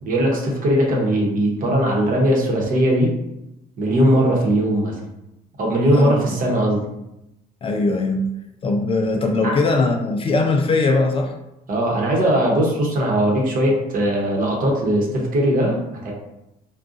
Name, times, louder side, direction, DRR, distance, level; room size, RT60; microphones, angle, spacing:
voice 1, 0.0-3.1 3.8-5.0 5.6-6.8 9.4-9.5 11.7-16.1, right 1 dB, 55° right, -1 dB, 1.0 m, -19 dB
voice 2, 5.8-6.4 7.6-8.3 8.6-11.3, left 3 dB, 35° left, 3 dB, 0.4 m, -20 dB
3.8 x 2.3 x 2.5 m, 0.89 s
cardioid pair, 110°, 17 cm